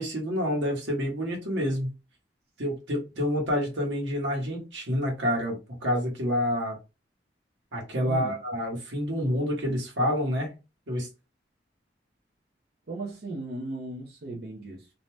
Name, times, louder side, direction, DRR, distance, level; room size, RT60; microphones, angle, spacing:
voice 1, 0.0-1.9 2.6-6.8 7.7-10.5 10.9-11.1, equal, 90° right, 1.2 m, -28 dB
voice 2, 8.0-8.4 12.9-14.9, right 2 dB, 60° right, 0.7 m, -36 dB
2.7 x 2.2 x 3.2 m
head